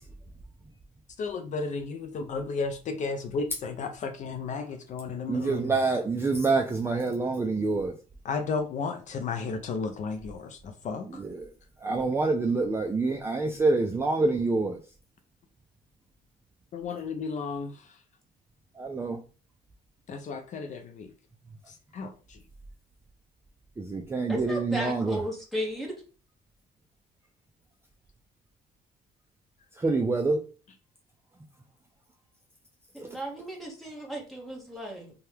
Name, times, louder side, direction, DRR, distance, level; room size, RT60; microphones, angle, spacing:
voice 1, 1.2-5.8 8.2-11.2 16.7-17.9 20.1-21.1 21.7-22.4, left 4 dB, 45° left, 7 dB, 0.4 m, -33 dB
voice 2, 5.3-7.9 11.2-11.5 11.8-14.8 18.8-19.2 23.8-25.2 29.8-30.4, right 3 dB, 15° right, 1 dB, 0.4 m, -26 dB
voice 3, 24.3-25.9 32.9-35.1, equal, ahead, -1 dB, 1.1 m, -35 dB
2.8 x 2.3 x 3.2 m, 0.36 s
cardioid pair, 110°, 17 cm